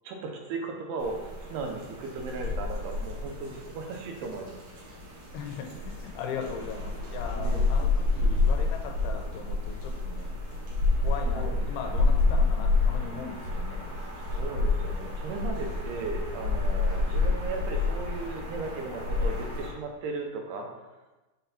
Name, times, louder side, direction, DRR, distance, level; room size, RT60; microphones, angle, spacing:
voice 1, 0.0-4.6 7.4-7.7 11.4-11.5 12.2-12.5 14.2-20.7, right 3 dB, 85° right, 2 dB, 2.8 m, -36 dB
sound 1, 1.0-19.7, left 3 dB, 60° right, 1.7 m, -29 dB
voice 2, 5.3-10.3 11.0-13.9, left 6 dB, 85° left, 3 dB, 2.8 m, -38 dB
6.6 x 4.1 x 4.1 m, 1.1 s
omnidirectional pair, 4.6 m